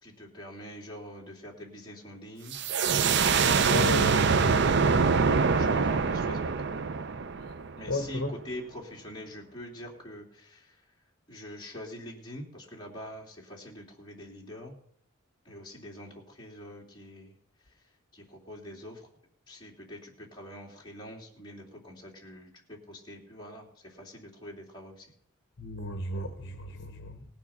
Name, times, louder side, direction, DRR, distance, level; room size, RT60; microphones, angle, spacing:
voice 1, 0.0-2.6 3.3-4.2 4.6-6.5 7.8-10.9 11.3-14.7 15.4-17.3 17.6-19.1 19.5-25.1, left 1 dB, 20° left, -3 dB, 3.0 m, -45 dB
sound 1, 2.5-8.1, right 5 dB, 55° right, 0.5 m, -24 dB
voice 2, 3.7-4.7 7.9-8.3 25.6-27.3, left 1 dB, 55° left, 5 dB, 1.2 m, -34 dB
19.0 x 7.2 x 5.8 m, 0.67 s
head